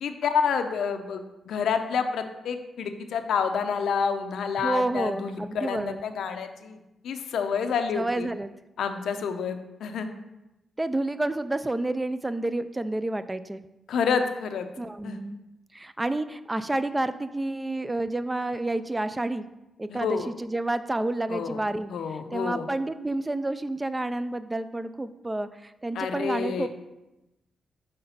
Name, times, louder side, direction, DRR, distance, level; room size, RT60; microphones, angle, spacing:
voice 1, 0.0-8.3 8.8-10.1 13.9-14.7 15.0-15.2 19.9-20.3 21.3-21.6 21.9-22.7 25.9-26.7, left 6 dB, 85° left, 7 dB, 0.5 m, -28 dB
voice 2, 4.6-6.0 7.9-8.5 10.8-13.6 14.8-15.4 15.7-19.4 19.8-21.9 22.3-26.7, right 2 dB, 15° right, 12 dB, 0.3 m, -29 dB
5.7 x 3.3 x 5.6 m, 0.97 s
cardioid pair, 85°, 0 cm